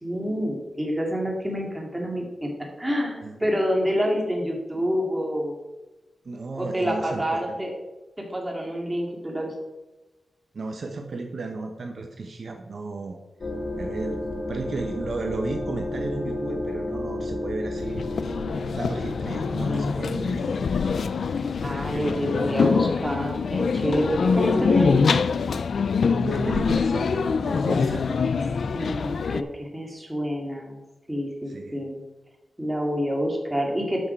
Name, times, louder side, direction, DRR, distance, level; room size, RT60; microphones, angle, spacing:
voice 1, 0.0-2.5 2.8-5.6 6.6-7.7 8.2-9.5 21.6-25.0 28.7-30.8 31.1-32.0 32.6-34.1, equal, 10° right, 0 dB, 2.3 m, -27 dB
voice 2, 6.2-7.6 10.5-13.2 13.8-14.2 14.5-18.0 18.7-20.6 21.9-22.6 25.9-28.2 31.5-31.8, right 3 dB, 55° right, 3 dB, 1.0 m, -34 dB
sound 1, 13.4-22.5, left 1 dB, 45° left, 1.4 m, -33 dB
sound 2, 17.8-29.4, left 5 dB, 75° left, 0.5 m, -24 dB
12.0 x 6.2 x 4.6 m, 1.1 s
wide cardioid pair, 135°, 0 cm